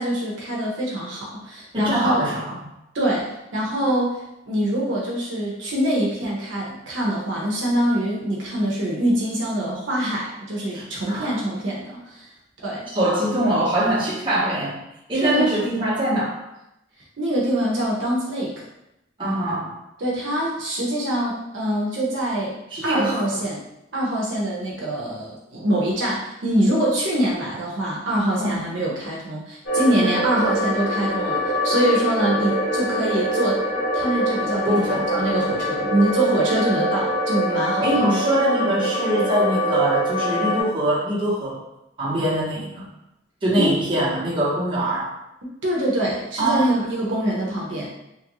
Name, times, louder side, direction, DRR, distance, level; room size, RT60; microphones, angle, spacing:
voice 1, 0.0-2.2 2.9-12.3 12.6-12.9 15.1-15.9 17.2-18.6 20.0-22.6 22.8-23.6 23.9-33.6 33.9-38.0 43.5-43.8 45.6-47.9, right 1 dB, 70° right, -4 dB, 0.7 m, -24 dB
voice 2, 1.7-2.6 10.7-11.4 12.9-14.8 15.1-16.3 19.2-19.7 22.7-23.3 28.4-28.6 29.9-30.1 34.6-35.1 37.8-41.6 42.0-42.9 43.4-45.1 46.4-46.8, right 1 dB, 25° right, -8 dB, 0.9 m, -23 dB
sound 1, 29.7-40.6, equal, 85° left, 1.3 m, -24 dB
3.0 x 2.4 x 2.9 m, 0.88 s
head